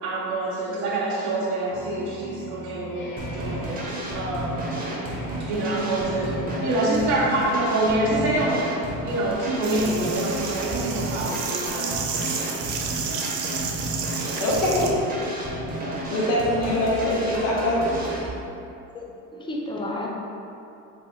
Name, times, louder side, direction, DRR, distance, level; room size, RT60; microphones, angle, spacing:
voice 1, 0.0-4.6 5.4-12.0 12.4-12.5, right 2 dB, 85° right, -7 dB, 0.8 m, -26 dB
sound 1, 1.7-6.9, equal, 35° left, 1.4 m, -40 dB
sound 2, 3.2-18.3, right 1 dB, 20° right, 0.8 m, -32 dB
sound 3, 9.6-14.9, right 6 dB, 50° right, 0.6 m, -31 dB
voice 2, 14.4-15.0 16.1-18.0, left 1 dB, 75° left, -5 dB, 1.2 m, -23 dB
voice 3, 18.9-20.1, left 1 dB, 15° left, -2 dB, 0.5 m, -32 dB
3.3 x 3.0 x 3.6 m, 2.7 s
supercardioid pair, 90°, 38 cm